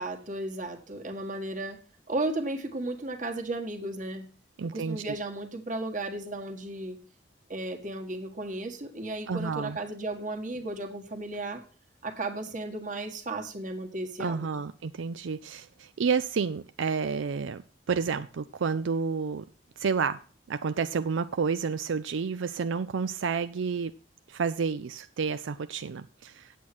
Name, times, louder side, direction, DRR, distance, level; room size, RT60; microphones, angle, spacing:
voice 1, 0.0-1.8 2.1-4.3 4.6-7.0 7.5-11.6 12.0-14.5, right 2 dB, 40° right, 1.6 m, -34 dB
voice 2, 4.6-5.2 9.3-9.8 14.2-17.6 17.9-19.4 19.8-20.2 20.5-23.9 24.3-26.5, right 5 dB, 80° right, 0.4 m, -30 dB
8.6 x 8.4 x 6.0 m
head